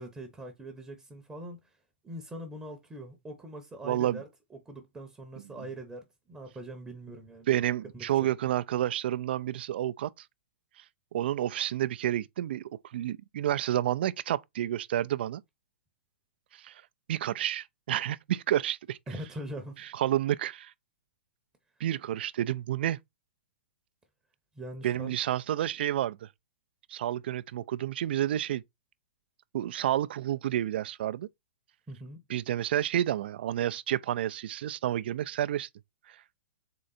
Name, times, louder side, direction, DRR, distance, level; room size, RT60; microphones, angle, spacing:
voice 1, 0.0-1.7 2.0-4.3 4.6-7.6 7.9-8.3 19.1-19.8 24.5-25.2 31.9-32.2, right 1 dB, 10° right, 0.8 m, -42 dB
voice 2, 3.8-4.2 5.6-5.7 7.5-10.1 11.1-12.6 12.9-15.4 16.6-16.7 17.1-19.0 19.9-20.7 21.8-23.0 24.8-26.3 26.9-28.6 29.5-31.3 32.3-35.7 36.1-36.2, right 12 dB, 65° right, 0.4 m, -30 dB
3.8 x 3.3 x 4.0 m
hypercardioid pair, 125°, 6 cm